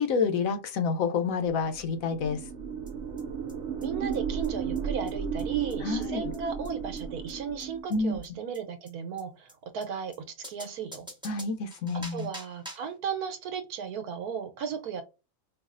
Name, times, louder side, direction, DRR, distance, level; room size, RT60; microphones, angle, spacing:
voice 1, 0.0-2.4 5.8-6.3 7.9-8.2 11.2-12.3, left 5 dB, 70° left, 1.1 m, -28 dB
sound 1, 1.7-7.9, right 6 dB, 65° right, 0.7 m, -34 dB
sound 2, 2.9-3.0 3.2-3.3 3.5-3.6 3.8-3.9 4.1-4.2 4.4-4.5 4.7-4.8 5.1-5.2 5.4-5.5 5.7-5.8 6.0-6.1 6.3-6.4 6.6-6.7 7.0-7.1 7.3-7.4 7.6-7.7 7.9-8.0 8.2-8.3 8.5-8.6 8.9-9.0 9.2-9.3 9.5-9.6 9.8-9.9 10.1-10.2 10.4-13.0, equal, 5° right, 0.9 m, -46 dB
voice 2, 3.8-11.1 11.9-15.0, right 6 dB, 90° right, 1.3 m, -35 dB
4.7 x 2.4 x 2.4 m
omnidirectional pair, 1.5 m